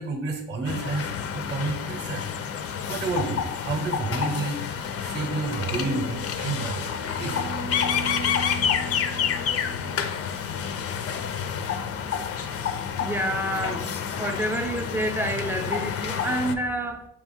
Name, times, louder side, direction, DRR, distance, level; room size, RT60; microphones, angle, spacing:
voice 1, 0.0-2.3 2.9-7.6, right 3 dB, 35° right, 3 dB, 0.7 m, -30 dB
sound 1, 0.6-16.5, left 7 dB, 50° left, 0.4 m, -29 dB
sound 2, 6.4-10.4 12.8-12.9, right 1 dB, 70° right, 0.6 m, -38 dB
voice 2, 13.0-13.9 14.2-17.1, right 1 dB, 5° right, 5 dB, 0.5 m, -28 dB
4.4 x 2.4 x 3.5 m, 0.81 s
cardioid pair, 90°, 30 cm